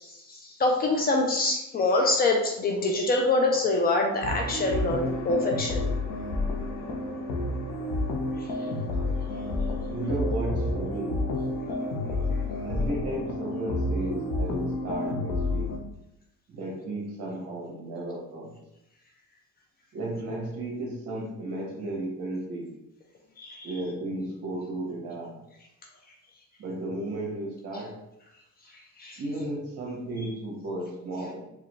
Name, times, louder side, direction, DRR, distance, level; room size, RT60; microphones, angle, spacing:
voice 1, 0.0-5.9 8.4-8.5 23.4-23.7 29.0-29.2, left 2 dB, 30° left, 1 dB, 0.4 m, -25 dB
sound 1, 4.2-15.8, left 2 dB, 75° left, 0.8 m, -30 dB
voice 2, 9.9-11.2 12.6-15.7 16.5-18.5 19.9-22.7 23.6-25.4 26.6-28.0 29.2-31.4, right 1 dB, 55° right, -3 dB, 1.5 m, -34 dB
4.8 x 2.2 x 3.1 m, 0.86 s
cardioid pair, 180°, 30 cm